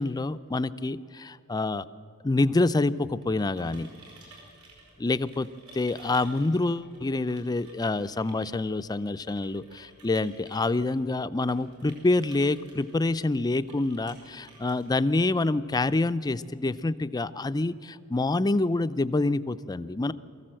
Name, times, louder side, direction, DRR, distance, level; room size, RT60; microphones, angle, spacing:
voice 1, 0.0-1.9 2.2-3.9 5.0-5.5 5.7-20.1, left 2 dB, 20° left, 13 dB, 0.4 m, -27 dB
sound 1, 3.0-15.7, right 2 dB, 75° right, 4.9 m, -55 dB
23.0 x 14.5 x 7.6 m, 2.5 s
head